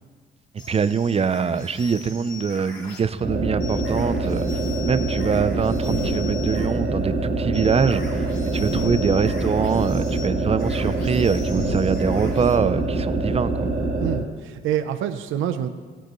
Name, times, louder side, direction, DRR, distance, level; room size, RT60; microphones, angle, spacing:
sound 1, 0.6-3.1 3.6-6.7 7.5-12.6, left 5 dB, 80° left, 3.8 m, -41 dB
voice 1, 0.7-4.6 4.9-13.7, right 6 dB, 30° right, 14 dB, 0.5 m, -24 dB
sound 2, 3.2-14.3, right 2 dB, 65° right, 2.9 m, -25 dB
voice 2, 14.0-15.7, right 10 dB, 85° right, 9 dB, 0.7 m, -26 dB
17.0 x 10.0 x 3.1 m, 1.5 s
cardioid pair, 90°, 20 cm